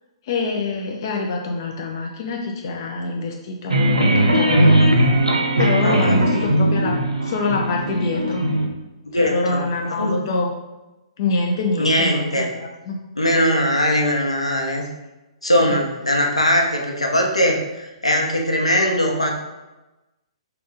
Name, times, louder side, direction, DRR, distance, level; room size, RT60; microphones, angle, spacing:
voice 1, 0.2-4.8 5.6-8.5 9.1-10.5 11.2-13.0 15.7-15.8, left 3 dB, 45° left, 1 dB, 0.4 m, -25 dB
sound 1, 3.7-8.7, right 1 dB, 80° right, 0.5 m, -18 dB
voice 2, 5.8-6.5 9.1-9.6 9.9-10.2 11.8-12.5 13.2-14.8 15.4-19.3, equal, 85° left, 0 dB, 0.6 m, -20 dB
3.7 x 2.2 x 3.5 m, 1.1 s
figure-of-eight pair, 120°, 3 cm